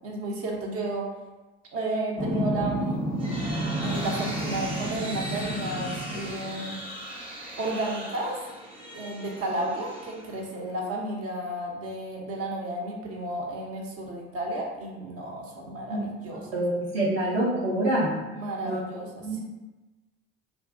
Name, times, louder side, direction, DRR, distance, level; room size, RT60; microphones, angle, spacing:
voice 1, 0.0-1.1 1.7-3.0 3.8-6.8 7.6-8.4 8.9-16.5 18.3-19.4, right 1 dB, 50° right, -1 dB, 0.7 m, -32 dB
sound 1, 2.2-6.6 7.9-8.1 8.4-10.5, right 1 dB, 5° left, 0.5 m, -31 dB
sound 2, 2.8-10.7, right 1 dB, 15° right, 0.8 m, -39 dB
voice 2, 16.5-18.2 18.6-18.8 19.2-19.4, right 1 dB, 75° right, -7 dB, 1.2 m, -26 dB
2.5 x 2.4 x 2.5 m, 1.1 s
hypercardioid pair, 60°, 31 cm